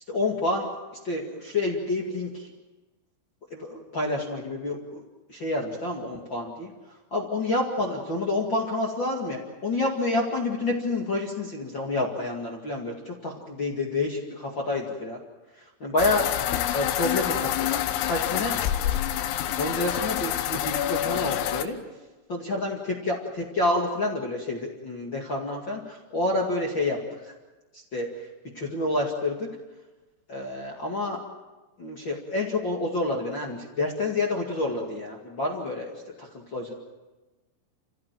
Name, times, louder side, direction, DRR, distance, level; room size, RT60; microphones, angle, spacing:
voice 1, 0.1-0.7 1.0-2.5 3.5-5.0 5.3-15.2 15.5-16.4 16.7-18.6 19.6-21.8 22.3-27.3 27.7-28.3 28.5-29.5 30.3-31.2 31.8-36.7, left 2 dB, 55° left, -1 dB, 1.3 m, -29 dB
sound 1, 16.0-21.7, left 12 dB, 85° left, 3.7 m, -27 dB
28.5 x 16.0 x 7.6 m, 1.2 s
omnidirectional pair, 5.9 m